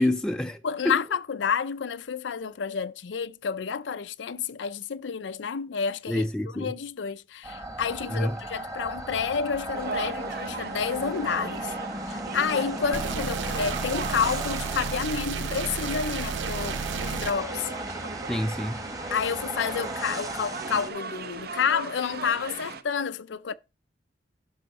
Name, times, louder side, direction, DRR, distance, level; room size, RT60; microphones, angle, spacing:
voice 1, 0.0-1.0 6.1-6.7 8.1-8.4 18.3-18.8, left 1 dB, 5° left, 0.4 m, -27 dB
voice 2, 0.6-6.3 6.6-11.8 12.1-17.7 19.1-23.5, left 6 dB, 85° left, 0.5 m, -30 dB
sound 1, 7.4-20.9, right 2 dB, 20° right, 1.3 m, -36 dB
sound 2, 9.7-22.8, right 4 dB, 60° right, 0.8 m, -38 dB
sound 3, 12.9-17.3, right 6 dB, 85° right, 0.4 m, -32 dB
11.5 x 5.5 x 4.0 m
head